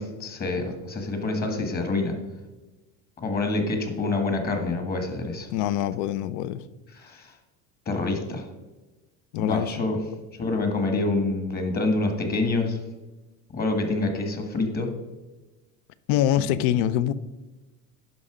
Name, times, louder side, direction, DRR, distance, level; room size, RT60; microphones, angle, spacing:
voice 1, 0.0-2.1 3.2-5.5 6.9-7.3 7.8-8.5 9.4-10.0 10.4-12.8 13.5-14.9 16.4-16.5, left 2 dB, 30° left, 1.6 m, -27 dB
voice 2, 5.5-6.6 9.3-9.7 16.1-17.1, left 11 dB, 70° left, 0.6 m, -24 dB
11.0 x 5.4 x 5.0 m
cardioid pair, 145°, 32 cm